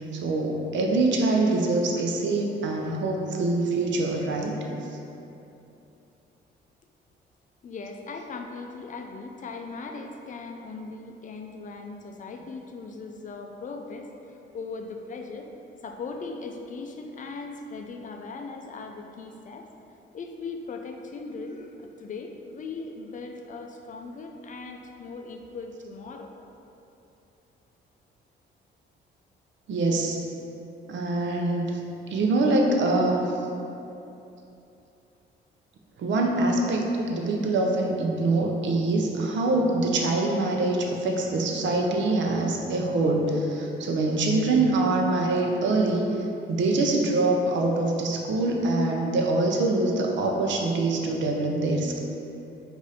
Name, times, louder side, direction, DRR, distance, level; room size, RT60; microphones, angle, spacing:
voice 1, 0.0-4.6 29.7-30.2 30.9-31.8 32.1-33.2 36.0-46.0 46.5-52.0, right 2 dB, 70° right, 0 dB, 0.6 m, -24 dB
voice 2, 7.6-15.5 15.8-19.7 20.1-26.3, left 4 dB, 40° left, 3 dB, 0.4 m, -39 dB
4.8 x 2.6 x 4.1 m, 2.8 s
cardioid pair, 90°, 20 cm